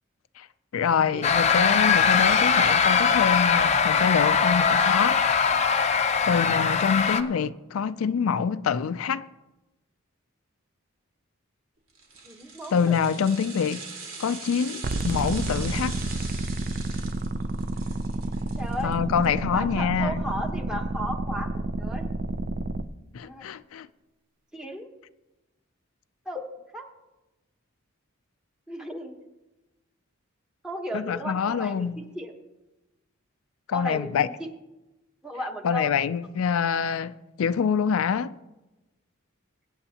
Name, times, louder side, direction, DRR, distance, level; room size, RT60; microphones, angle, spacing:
voice 1, 0.7-5.2 6.3-9.2 12.7-13.9 14.2-16.0 18.8-20.2 23.1-23.9 30.9-32.0 33.7-34.3 35.6-38.4, left 7 dB, 85° left, 0.4 m, -26 dB
sound 1, 1.2-7.2, left 6 dB, 35° left, 0.6 m, -21 dB
sound 2, 11.9-19.3 19.6-19.7, right 3 dB, 75° right, 2.3 m, -41 dB
voice 2, 12.2-13.0 18.6-19.0 19.5-21.5 21.8-22.1 23.2-23.4 24.5-24.9 26.2-26.5 26.7-26.9 28.7-29.1 30.6-32.3 33.7-34.3 35.2-35.9, equal, 5° right, 1.1 m, -35 dB
sound 3, 14.8-22.8, right 2 dB, 45° right, 0.5 m, -30 dB
23.0 x 8.8 x 2.9 m
head